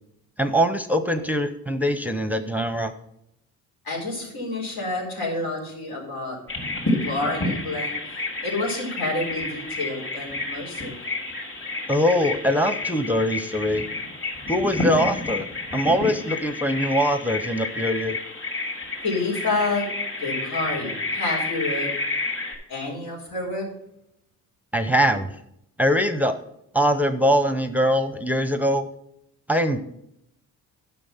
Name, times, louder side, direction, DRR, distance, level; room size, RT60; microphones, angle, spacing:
voice 1, 0.4-2.9 11.9-13.8 14.5-15.5 15.7-18.2 24.7-25.3 25.8-26.4 26.7-28.9 29.5-29.8, equal, 5° right, 9 dB, 0.6 m, -22 dB
voice 2, 3.8-6.4 6.9-11.0 19.0-19.9 20.2-21.9 22.7-23.7, left 2 dB, 85° left, -2 dB, 4.4 m, -29 dB
Bird vocalization bird call bird song, 6.5-22.6, left 2 dB, 35° left, 3.1 m, -30 dB
10.5 x 6.1 x 5.6 m, 0.78 s
cardioid pair, 110°, 35 cm